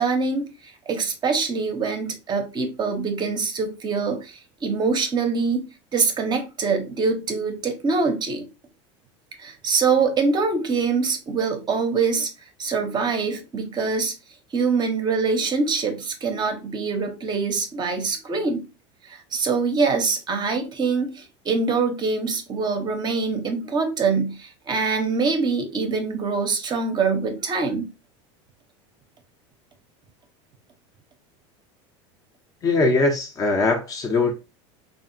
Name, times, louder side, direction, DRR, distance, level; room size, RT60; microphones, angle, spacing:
voice 1, 0.0-5.7 5.9-8.5 9.4-12.3 12.6-14.1 14.5-18.6 19.0-27.9, right 4 dB, 30° right, 0.5 m, -24 dB
voice 2, 32.6-34.3, left 3 dB, 25° left, 0.4 m, -21 dB
2.7 x 2.4 x 2.5 m
supercardioid pair, 110°, 16 cm